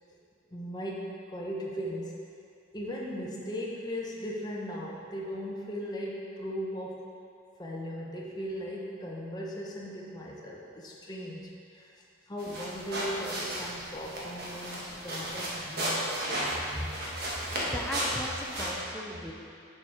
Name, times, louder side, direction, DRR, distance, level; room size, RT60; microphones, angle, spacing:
voice 1, 0.5-2.2 2.7-7.1 7.6-17.1, equal, 20° left, -3 dB, 0.9 m, -38 dB
sound 1, 12.4-18.7, right 1 dB, 50° right, 1.4 m, -34 dB
voice 2, 17.3-19.3, equal, 5° left, -3 dB, 0.5 m, -37 dB
6.7 x 6.1 x 4.8 m, 2.4 s
head